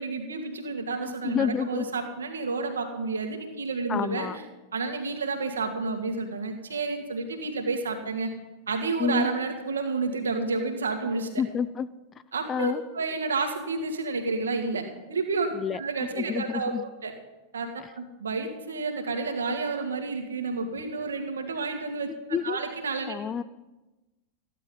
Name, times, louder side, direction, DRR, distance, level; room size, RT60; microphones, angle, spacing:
voice 1, 0.0-4.4 4.7-8.3 8.7-11.3 12.3-17.1 17.5-17.7 18.0-23.2, right 3 dB, 70° right, 4 dB, 2.0 m, -30 dB
voice 2, 1.1-1.9 3.9-4.4 9.0-9.3 11.4-11.9 12.5-12.8 15.5-16.8 22.3-22.6 23.1-23.4, left 7 dB, 25° left, 16 dB, 0.5 m, -29 dB
14.5 x 11.0 x 5.5 m, 1.1 s
figure-of-eight pair, 90°, 0 cm